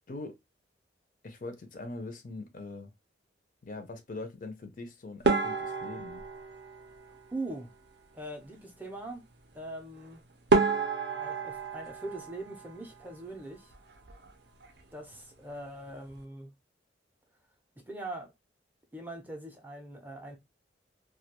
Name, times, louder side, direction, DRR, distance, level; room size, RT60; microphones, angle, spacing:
voice 1, 1.2-2.9 3.6-6.2, left 2 dB, 45° left, 0.4 m, -42 dB
sound 1, 5.2-7.7 10.0-10.1 10.5-13.3 13.5-14.3 14.6-14.8 15.1-15.2 15.8-16.2, right 4 dB, 65° right, 0.5 m, -30 dB
voice 2, 7.3-7.7 8.1-9.2 9.5-10.2 11.2-13.7 14.9-16.5 17.8-18.3 18.9-20.4, right 2 dB, 10° right, 0.5 m, -41 dB
2.3 x 2.2 x 2.8 m
head